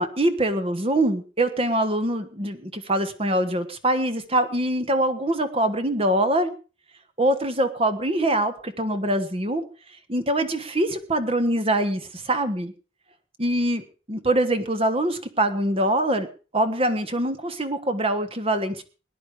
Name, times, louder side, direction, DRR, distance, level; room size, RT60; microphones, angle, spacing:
voice 1, 0.0-6.5 7.2-9.6 10.1-12.7 13.4-16.3 16.5-18.8, right 1 dB, 30° right, 9 dB, 1.4 m, -24 dB
19.5 x 10.5 x 5.0 m, 0.36 s
head